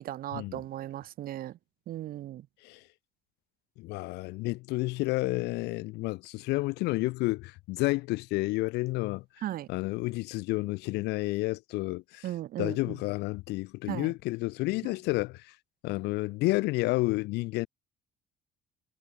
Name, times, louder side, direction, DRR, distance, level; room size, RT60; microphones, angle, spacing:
voice 1, 0.0-1.6 1.9-2.4 9.4-9.7 12.2-12.9 13.9-14.1, right 13 dB, 60° right, 0.9 m, -36 dB
voice 2, 3.8-9.2 9.7-12.3 12.6-15.5 15.8-17.7, left 21 dB, 80° left, 0.4 m, -30 dB
cardioid pair, 110°, 17 cm